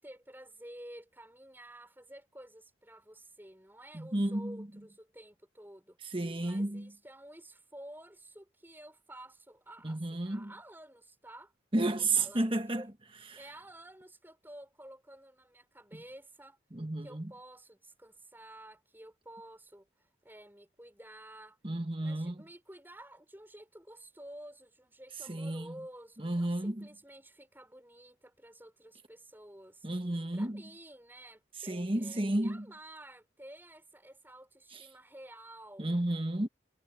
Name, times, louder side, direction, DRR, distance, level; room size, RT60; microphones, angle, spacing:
voice 1, 0.0-11.5 12.0-12.9 13.3-16.6 17.0-21.6 22.0-29.9 30.3-35.9, right 1 dB, 10° right, 5.8 m, -52 dB
voice 2, 3.9-4.7 6.1-6.9 9.8-10.5 11.7-12.8 15.9-16.0 16.7-17.3 21.6-22.4 25.3-25.7 26.2-26.9 29.8-30.6 31.7-32.6 34.7-34.8 35.8-36.5, right 2 dB, 30° right, 1.4 m, -32 dB
head